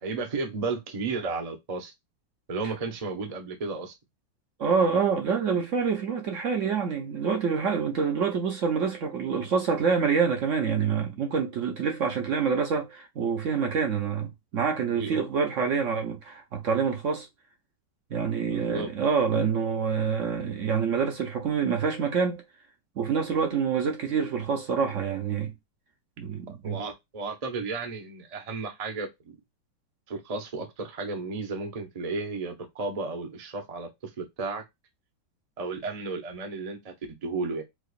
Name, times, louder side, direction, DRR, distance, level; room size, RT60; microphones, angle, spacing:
voice 1, 0.0-1.9 2.5-3.9 14.9-15.2 18.5-18.9 26.6-29.4 30.1-33.9 34.2-34.6 35.6-36.9 37.2-37.6, right 3 dB, 35° right, 0.6 m, -33 dB
voice 2, 4.6-17.3 18.1-22.4 23.0-25.5 26.2-26.8, right 6 dB, 60° right, 0.9 m, -26 dB
4.7 x 2.4 x 2.4 m
omnidirectional pair, 1.9 m